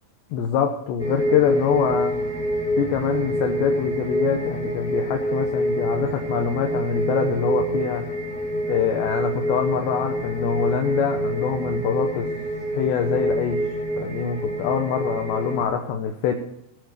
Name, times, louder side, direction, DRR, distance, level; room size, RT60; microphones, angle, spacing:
voice 1, 0.3-2.2 2.8-8.1 8.7-12.3 12.7-13.6 14.0-16.3, left 7 dB, 75° left, 4 dB, 2.8 m, -24 dB
sound 1, 1.0-15.6, equal, 5° left, 0.6 m, -26 dB
17.5 x 8.4 x 6.4 m, 0.77 s
omnidirectional pair, 6.0 m